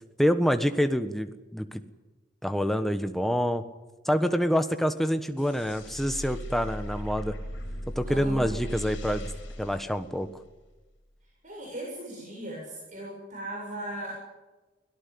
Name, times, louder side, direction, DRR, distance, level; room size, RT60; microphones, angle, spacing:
voice 1, 0.2-1.8 2.4-3.6 4.0-7.3 7.9-9.3 9.6-10.3, equal, ahead, 8 dB, 1.3 m, -26 dB
sound 1, 5.4-10.7, equal, 80° left, 5.3 m, -38 dB
voice 2, 8.1-8.6 11.4-14.2, right 1 dB, 40° right, -3 dB, 7.3 m, -38 dB
25.0 x 17.5 x 8.6 m, 1.2 s
head